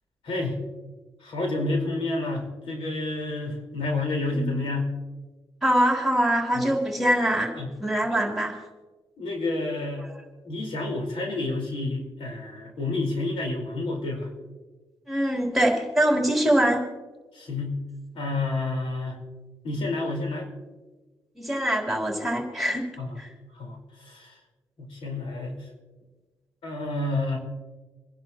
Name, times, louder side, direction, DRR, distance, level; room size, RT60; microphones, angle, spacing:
voice 1, 0.2-0.6 1.2-4.9 6.5-6.6 7.6-7.7 8.2-8.3 9.2-10.0 10.4-14.3 17.3-17.8 18.1-19.2 19.6-20.5 23.0-23.2 23.5-24.4 24.8-25.7 26.6-27.4, left 2 dB, 85° left, 1 dB, 4.5 m, -29 dB
voice 2, 4.2-4.6 5.6-8.6 15.1-16.8 21.4-22.9 23.2-23.3, right 1 dB, ahead, 0 dB, 3.4 m, -24 dB
28.5 x 11.0 x 3.0 m, 1.2 s
cardioid pair, 85°, 9 cm